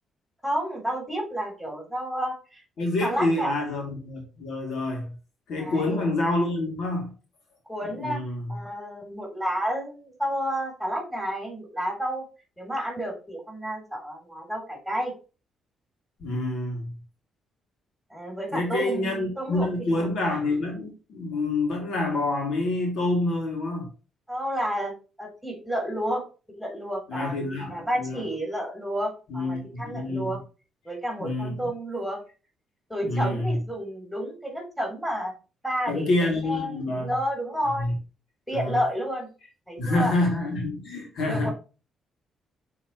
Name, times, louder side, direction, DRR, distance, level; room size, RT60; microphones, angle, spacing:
voice 1, 0.4-3.5 5.6-6.1 7.7-8.2 8.5-12.2 12.6-15.1 18.1-19.7 19.9-20.0 24.3-26.2 26.6-27.3 27.7-30.4 30.8-32.2 32.9-35.3 35.6-37.9 38.5-39.3 39.7-40.1 41.2-41.5, equal, ahead, 3.4 m, -31 dB
voice 2, 2.8-5.1 5.5-7.1 8.0-8.5 16.2-16.9 18.5-23.9 27.1-28.2 29.3-30.4 31.2-31.7 33.0-33.5 35.9-37.1 37.8-37.9 38.5-38.8 39.8-41.5, left 2 dB, 70° left, 2.7 m, -27 dB
8.5 x 4.1 x 3.1 m
cardioid pair, 90°, 0 cm